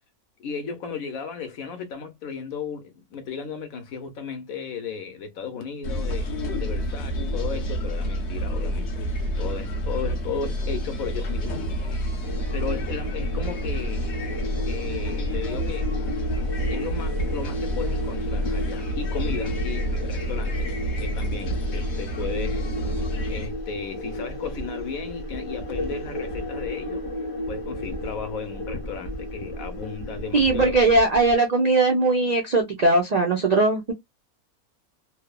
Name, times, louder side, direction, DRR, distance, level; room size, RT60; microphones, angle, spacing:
voice 1, 0.4-9.1 9.4-11.7 12.5-14.3 14.6-15.9 16.7-22.6 23.3-27.0 27.5-30.8, left 6 dB, 70° left, 1.2 m, -35 dB
sound 1, 5.8-23.5, equal, 55° left, 0.9 m, -28 dB
sound 2, 12.2-31.3, left 1 dB, 35° left, 0.6 m, -34 dB
voice 2, 30.3-33.9, right 2 dB, 80° right, 0.3 m, -20 dB
3.1 x 2.0 x 2.2 m
omnidirectional pair, 1.6 m